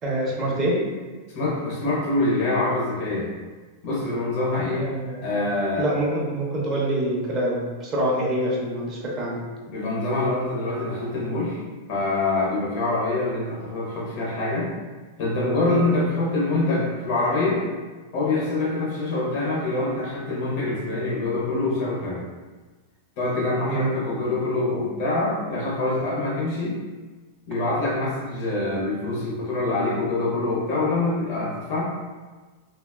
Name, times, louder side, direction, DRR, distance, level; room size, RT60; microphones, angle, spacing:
voice 1, 0.0-0.8 4.8-5.2 5.8-9.4 15.7-15.8 23.7-23.9, right 1 dB, 15° right, -4 dB, 0.5 m, -25 dB
voice 2, 1.3-3.3 3.8-4.9 5.2-5.9 9.7-11.6 11.9-14.7 15.2-17.6 18.1-22.2 23.2-26.8 27.5-31.8, left 2 dB, 40° left, -5 dB, 0.6 m, -25 dB
3.4 x 2.2 x 2.3 m, 1.3 s
supercardioid pair, 175°, 0 cm